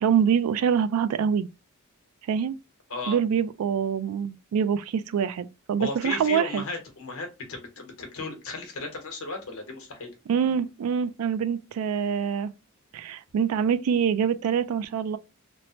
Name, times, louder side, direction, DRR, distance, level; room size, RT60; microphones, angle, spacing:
voice 1, 0.0-1.5 2.3-2.5 3.1-6.6 10.3-12.5 12.9-15.2, right 7 dB, 80° right, 0.3 m, -25 dB
voice 2, 5.8-10.1, left 3 dB, 70° left, 1.0 m, -35 dB
3.0 x 2.0 x 2.7 m
head